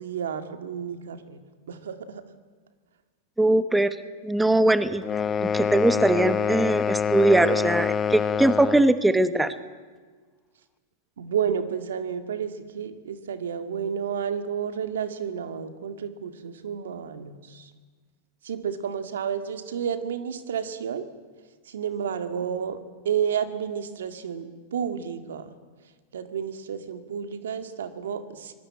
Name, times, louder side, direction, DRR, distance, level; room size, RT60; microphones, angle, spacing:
voice 1, 0.0-1.4 1.7-2.2 11.2-17.7 18.4-21.1 21.7-25.5 26.1-28.5, right 7 dB, 90° right, 9 dB, 2.1 m, -31 dB
voice 2, 3.4-4.0 4.2-5.0 5.4-9.5, right 1 dB, 5° right, 12 dB, 1.1 m, -21 dB
sound 1, 5.0-8.9, left 7 dB, 20° left, 0.7 m, -26 dB
25.5 x 20.0 x 8.7 m, 1.5 s
hypercardioid pair, 130°, 0 cm